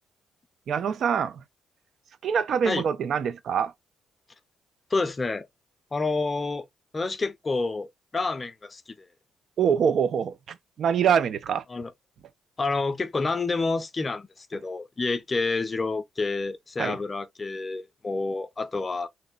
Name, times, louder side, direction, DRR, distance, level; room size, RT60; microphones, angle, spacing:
voice 1, 0.7-1.4 2.2-3.7 9.6-11.6 16.8-17.0, right 7 dB, 55° right, 0.4 m, -25 dB
voice 2, 4.9-5.5 5.9-6.6 6.9-7.9 8.1-8.8 11.7-11.9 12.6-19.1, left 3 dB, 30° left, 0.6 m, -28 dB
3.2 x 2.8 x 2.4 m
figure-of-eight pair, 45°, 0 cm